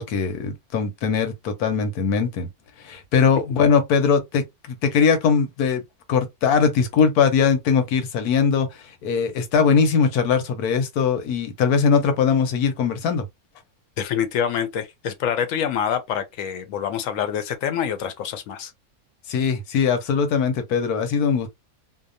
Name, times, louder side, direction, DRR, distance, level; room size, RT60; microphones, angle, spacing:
voice 1, 0.0-2.5 2.8-5.8 6.1-13.3 19.3-21.5, left 6 dB, 85° left, 1.2 m, -21 dB
voice 2, 14.0-18.7, left 8 dB, 70° left, 0.9 m, -26 dB
2.8 x 2.1 x 2.5 m
omnidirectional pair, 1.6 m